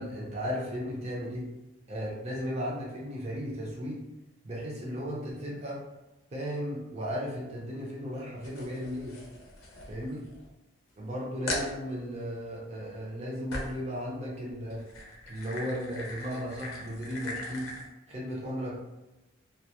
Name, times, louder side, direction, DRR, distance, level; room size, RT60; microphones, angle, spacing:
voice 1, 0.0-1.5 1.9-4.0 4.4-5.8 6.3-9.2 9.9-10.2 11.0-14.8 15.3-17.7 18.1-18.8, equal, 30° right, -4 dB, 0.5 m, -35 dB
sound 1, 8.4-10.5 10.9-11.0 11.5-11.7 13.5-13.9 14.6-17.9, left 2 dB, 75° left, 0.6 m, -39 dB
2.3 x 2.0 x 2.7 m, 1.0 s
head